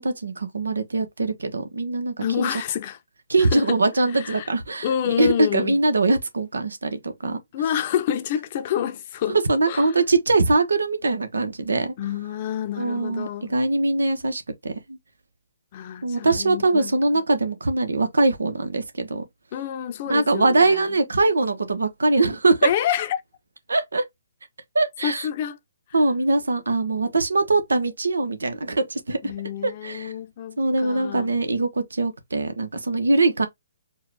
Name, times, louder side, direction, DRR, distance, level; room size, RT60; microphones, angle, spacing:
voice 1, 0.0-2.5 3.3-7.4 9.3-11.9 12.8-15.0 16.0-19.2 20.1-22.7 23.7-24.0 24.7-25.3 25.9-29.3 29.6-30.1 30.6-33.5, right 2 dB, 90° right, 1.0 m, -22 dB
voice 2, 2.2-3.0 3.4-3.8 4.1-4.5 4.8-5.8 7.5-9.4 9.7-9.9 12.0-13.5 15.7-17.0 19.5-20.9 22.6-23.2 25.0-25.6 29.2-31.3, left 10 dB, 40° left, 0.7 m, -28 dB
4.5 x 2.3 x 3.4 m
hypercardioid pair, 150°, 0 cm